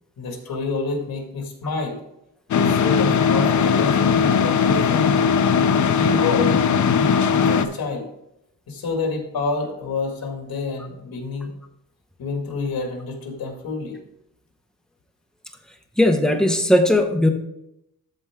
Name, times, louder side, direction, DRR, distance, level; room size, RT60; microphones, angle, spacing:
voice 1, 0.2-2.0 2.5-5.1 6.0-8.1 8.7-11.5 12.2-14.0, left 3 dB, 75° left, 1 dB, 2.0 m, -28 dB
sound 1, 2.5-7.7, left 6 dB, 55° left, 0.6 m, -18 dB
voice 2, 16.0-17.3, left 1 dB, ahead, 4 dB, 0.8 m, -17 dB
13.0 x 4.5 x 3.6 m, 0.83 s
wide cardioid pair, 135°, 36 cm